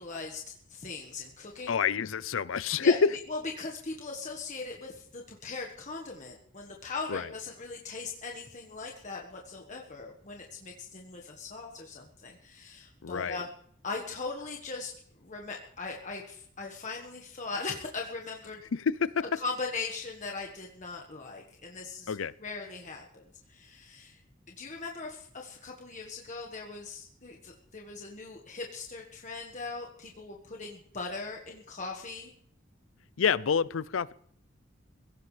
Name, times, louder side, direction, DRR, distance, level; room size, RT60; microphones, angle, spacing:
voice 1, 0.0-1.8 2.8-3.0 3.3-13.5 13.8-14.9 15.2-18.6 19.4-22.1 22.4-23.2 23.5-24.2 24.5-32.3, left 3 dB, 40° left, 0 dB, 1.5 m, -39 dB
voice 2, 1.7-3.1 7.1-7.3 13.0-13.4 18.7-19.2 22.1-22.3 33.2-34.1, left 6 dB, 80° left, 18 dB, 0.5 m, -27 dB
23.0 x 16.5 x 3.3 m, 0.64 s
head